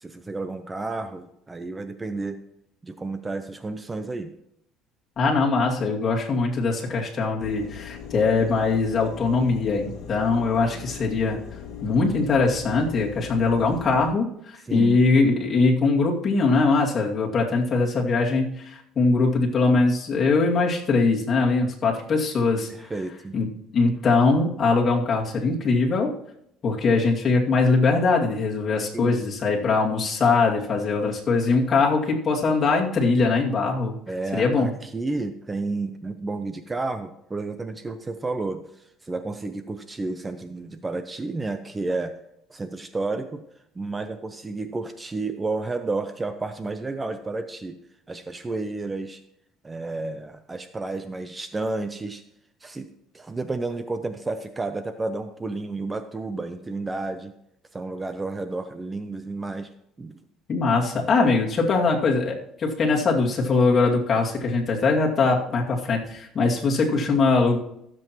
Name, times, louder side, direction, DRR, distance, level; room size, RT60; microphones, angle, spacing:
voice 1, 0.0-2.4 2.8-4.3 14.6-15.0 22.7-23.4 28.8-29.3 34.1-42.1 42.5-43.4 43.8-47.8 48.1-49.2 49.6-52.2 52.6-52.9 53.1-57.3 57.7-59.7 60.0-60.2, right 3 dB, 20° right, 10 dB, 0.6 m, -31 dB
voice 2, 5.2-11.4 11.8-14.3 14.7-22.7 23.3-23.5 23.7-26.1 26.6-33.9 34.3-34.7 60.5-67.6, left 3 dB, 35° left, -2 dB, 2.4 m, -21 dB
sound 1, 7.4-14.1, left 8 dB, 65° left, 2.2 m, -39 dB
16.0 x 7.6 x 3.0 m, 0.76 s
cardioid pair, 110°, 0 cm